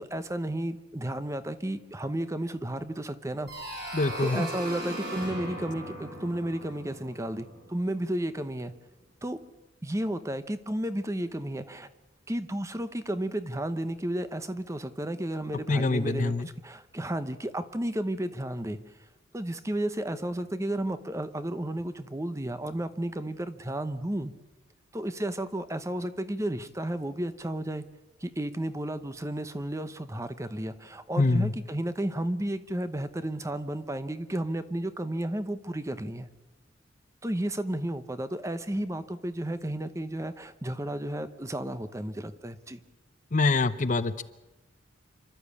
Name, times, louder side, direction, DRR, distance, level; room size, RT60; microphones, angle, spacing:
voice 1, 0.0-3.5 4.2-8.7 9.2-9.4 9.8-11.9 12.3-16.3 16.6-18.8 19.3-24.3 24.9-27.8 28.2-36.3 37.2-42.8, right 1 dB, 15° right, 11 dB, 0.8 m, -32 dB
sound 1, 3.5-8.1, right 1 dB, 55° right, 7.7 m, -38 dB
voice 2, 3.9-4.5 15.7-16.5 31.2-31.5 43.3-44.2, left 3 dB, 40° left, 13 dB, 0.7 m, -25 dB
28.0 x 12.5 x 8.5 m, 1.1 s
head